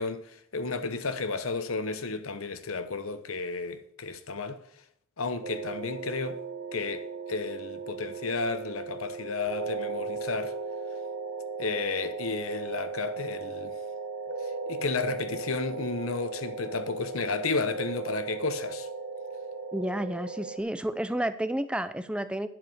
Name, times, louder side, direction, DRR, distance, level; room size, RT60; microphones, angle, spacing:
voice 1, 0.0-4.6 5.2-6.4 6.7-10.6 11.6-13.8 14.7-18.9, left 4 dB, 90° left, 1.0 m, -32 dB
sound 1, 5.4-20.6, right 4 dB, 45° right, 1.2 m, -37 dB
voice 2, 19.7-22.5, right 1 dB, 5° right, 0.5 m, -31 dB
11.0 x 4.9 x 8.0 m
head